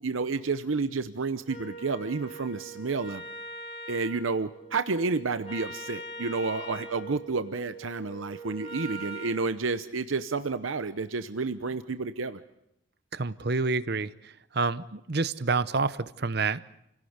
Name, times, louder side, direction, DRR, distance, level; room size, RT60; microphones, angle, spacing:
voice 1, 0.0-3.2 3.9-12.4, right 4 dB, 85° right, 11 dB, 0.8 m, -30 dB
Wind instrument woodwind instrument, 1.5-9.4, right 2 dB, 30° left, 3.0 m, -42 dB
voice 2, 13.1-16.6, right 4 dB, 55° right, 15 dB, 0.8 m, -28 dB
28.5 x 17.0 x 8.0 m, 0.83 s
head